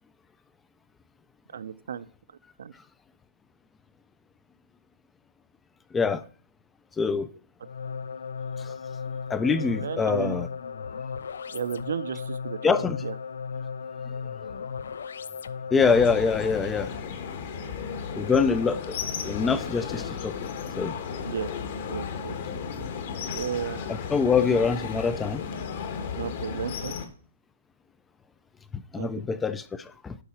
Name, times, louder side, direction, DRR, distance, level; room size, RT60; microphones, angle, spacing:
voice 1, 1.5-2.0 2.6-2.7 9.8-10.4 11.5-12.6 13.0-13.1 17.5-17.7 21.2-21.5 21.9-22.4 22.8-22.9 23.3-23.8 26.1-26.9 29.0-29.1, right 8 dB, 75° right, 0.5 m, -33 dB
voice 2, 7.0-7.3 9.3-10.5 12.6-13.0 15.7-16.9 18.2-18.9 19.2-20.3 20.8-20.9 23.9-25.4 28.7-30.2, left 5 dB, 10° left, 0.3 m, -24 dB
sound 1, 7.6-16.4, left 6 dB, 90° left, 0.4 m, -36 dB
sound 2, 15.8-27.1, left 6 dB, 45° left, 1.2 m, -34 dB
11.5 x 4.8 x 4.3 m
hypercardioid pair, 170°, 0 cm